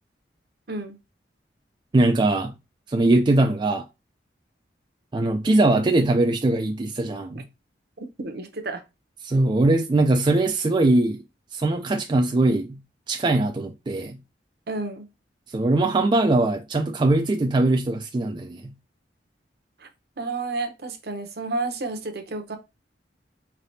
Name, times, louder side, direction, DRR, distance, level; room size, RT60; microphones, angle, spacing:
voice 1, 1.9-2.5 2.9-3.9 5.1-7.4 9.2-11.2 11.5-12.8 13.1-14.2 15.5-18.7, right 2 dB, 25° right, 0.3 m, -21 dB
voice 2, 8.0-8.8 14.7-15.1 19.8-19.9 20.2-22.6, right 3 dB, 60° right, 0.8 m, -31 dB
4.9 x 3.4 x 2.7 m
head